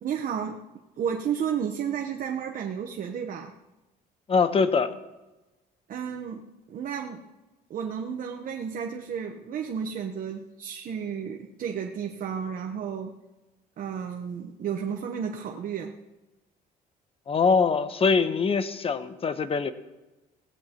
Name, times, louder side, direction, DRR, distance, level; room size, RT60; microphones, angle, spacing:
voice 1, 0.0-0.6 1.0-3.6 5.9-7.2 7.7-13.2 13.8-16.0, right 7 dB, 55° right, 1.1 m, -32 dB
voice 2, 4.3-5.0 17.3-19.7, left 5 dB, 35° left, 1.1 m, -23 dB
18.5 x 16.0 x 3.0 m
cardioid pair, 110°, 17 cm